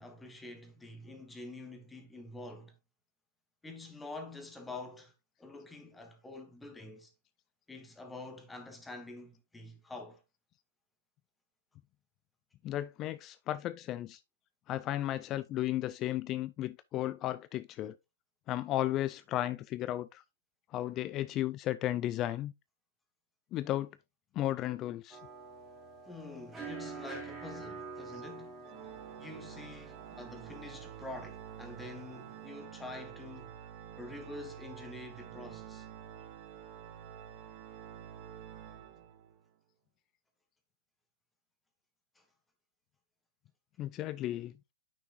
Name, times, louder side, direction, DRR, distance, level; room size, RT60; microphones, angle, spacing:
voice 1, 0.0-2.7 3.6-5.1 5.4-7.1 7.7-10.2 26.1-28.6 29.2-33.6 34.0-35.9 42.1-42.2, left 2 dB, 5° left, 1.2 m, -47 dB
voice 2, 12.6-14.2 14.7-18.0 18.5-20.2 20.7-22.5 23.5-24.0 24.3-25.2 43.8-44.5, left 14 dB, 30° left, 0.4 m, -34 dB
sound 1, 25.1-32.5, right 4 dB, 15° right, 2.4 m, -47 dB
Organ, 28.6-39.5, right 9 dB, 35° right, 1.2 m, -49 dB
8.8 x 6.1 x 2.4 m
hypercardioid pair, 130°, 0 cm